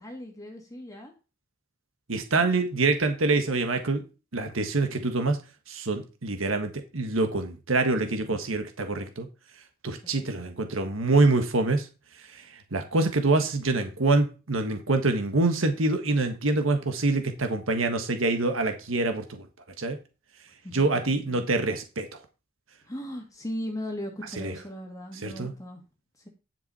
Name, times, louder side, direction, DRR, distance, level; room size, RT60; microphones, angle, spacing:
voice 1, 0.0-1.1 10.0-10.3 20.6-21.4 22.9-25.8 26.2-26.3, equal, 15° left, 1.9 m, -38 dB
voice 2, 2.1-4.0 4.3-5.4 5.7-9.3 9.8-11.9 12.3-12.4 12.7-19.4 19.8-20.0 20.7-22.1 24.4-24.5 25.2-25.5, right 3 dB, 85° right, 1.4 m, -25 dB
10.5 x 6.0 x 4.2 m
head